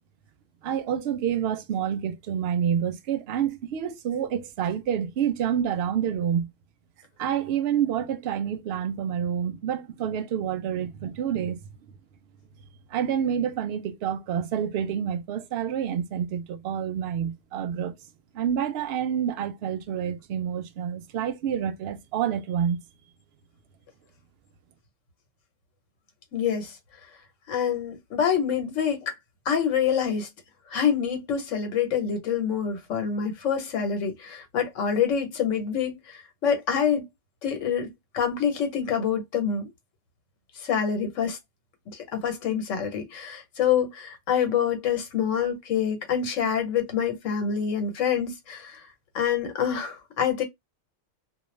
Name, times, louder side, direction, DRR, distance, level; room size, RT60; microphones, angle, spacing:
voice 1, 0.6-6.5 7.2-11.6 12.9-17.9 18.3-22.8, right 9 dB, 65° right, 0.7 m, -28 dB
voice 2, 26.3-26.7 27.5-29.1 29.5-30.3 30.7-37.0 37.4-39.7 40.6-41.4 41.9-48.8 49.1-50.4, left 7 dB, 80° left, 1.2 m, -26 dB
2.3 x 2.1 x 3.0 m
omnidirectional pair, 1.3 m